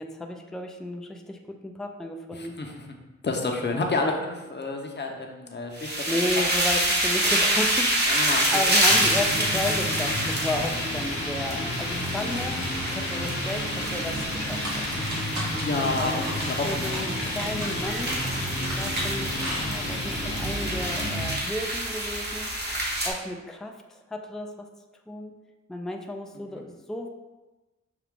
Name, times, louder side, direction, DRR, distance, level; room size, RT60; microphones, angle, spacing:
voice 1, 0.0-2.6 3.7-3.8 5.8-14.8 16.0-16.2 16.6-18.2 18.8-22.5 23.0-24.7 25.1-25.3 25.7-27.1, left 1 dB, ahead, 3 dB, 0.3 m, -33 dB
voice 2, 2.3-2.8 3.2-6.3 8.1-8.6 15.6-17.0 26.3-26.6, left 3 dB, 35° left, 2 dB, 0.7 m, -30 dB
sound 1, 5.8-23.1, right 1 dB, 35° right, 1.0 m, -27 dB
sound 2, 8.9-21.4, left 1 dB, 75° left, 1.1 m, -32 dB
sound 3, 14.4-20.1, right 1 dB, 70° right, 1.5 m, -36 dB
5.8 x 2.4 x 3.6 m, 1.1 s
wide cardioid pair, 80°, 29 cm